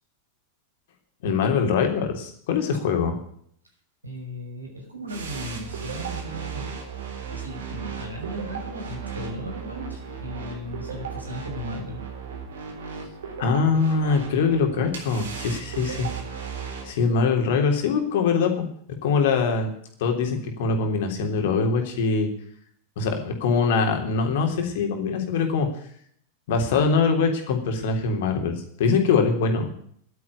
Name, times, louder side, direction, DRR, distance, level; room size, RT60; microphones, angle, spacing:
voice 1, 1.2-3.2 13.4-16.1 16.8-18.7 19.0-19.7 20.0-22.3 23.0-25.7 26.5-29.7, left 5 dB, 55° left, 4 dB, 3.4 m, -23 dB
voice 2, 4.0-12.0, equal, 85° right, 1 dB, 5.7 m, -37 dB
sound 1, 5.1-16.9, right 6 dB, 65° right, 3.8 m, -36 dB
12.0 x 9.5 x 9.7 m, 0.64 s
figure-of-eight pair, 90°, 0 cm